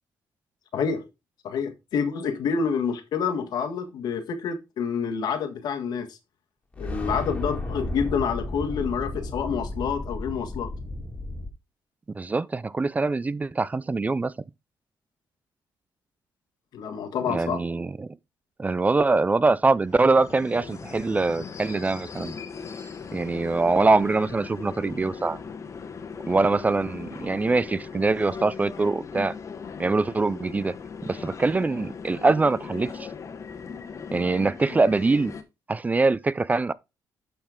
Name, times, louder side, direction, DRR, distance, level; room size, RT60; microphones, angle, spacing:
voice 1, 0.7-1.0 1.4-6.2 6.8-10.7 16.7-17.6, left 6 dB, 70° left, 1.5 m, -28 dB
sound 1, 6.7-11.5, left 1 dB, 15° left, 2.2 m, -33 dB
voice 2, 12.2-14.3 17.3-18.1 18.6-22.3 23.1-25.4 26.3-29.3 29.8-30.7 31.1-33.1 34.1-35.3 35.7-36.7, right 3 dB, 20° right, 0.4 m, -23 dB
sound 2, 19.8-35.4, left 5 dB, 45° left, 1.2 m, -39 dB
12.0 x 4.3 x 3.7 m
cardioid pair, 80°, 7 cm